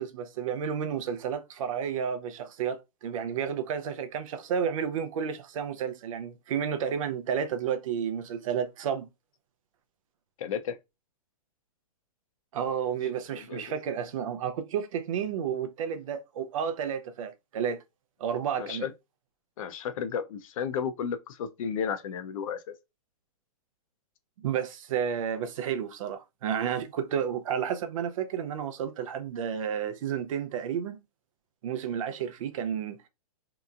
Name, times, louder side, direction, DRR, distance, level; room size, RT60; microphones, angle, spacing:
voice 1, 0.0-9.1 12.5-17.8 18.2-18.9 24.4-31.0 31.6-33.1, right 8 dB, 55° right, 0.5 m, -31 dB
voice 2, 10.4-10.8 13.5-13.6 18.6-18.9 19.6-22.7, left 7 dB, 55° left, 0.5 m, -33 dB
2.8 x 2.2 x 2.4 m
hypercardioid pair, 130°, 20 cm